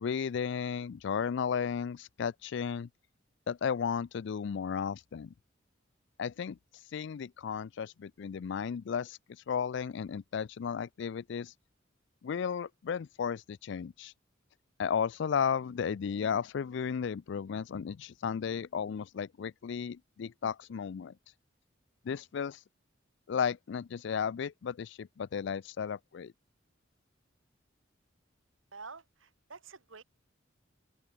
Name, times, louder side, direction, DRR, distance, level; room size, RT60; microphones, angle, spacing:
voice 1, 0.0-2.9 3.5-5.3 6.2-6.6 6.9-9.2 9.5-11.5 12.2-14.1 14.8-21.1 22.0-22.6 23.3-26.3, left 7 dB, 65° left, 0.4 m, -34 dB
voice 2, 28.7-30.0, right 4 dB, 90° right, 2.1 m, -48 dB
open air
head